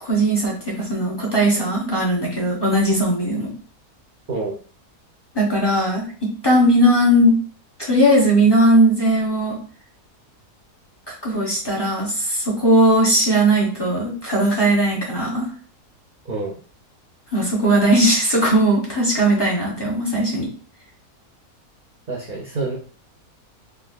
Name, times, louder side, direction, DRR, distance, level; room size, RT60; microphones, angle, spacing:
voice 1, 0.0-3.5 5.3-7.4 7.8-9.6 11.1-15.5 17.3-20.5, right 1 dB, 25° left, -3 dB, 0.6 m, -18 dB
voice 2, 16.2-16.6 22.1-22.8, right 3 dB, 55° right, -2 dB, 0.5 m, -27 dB
3.5 x 2.5 x 2.3 m, 0.40 s
omnidirectional pair, 1.6 m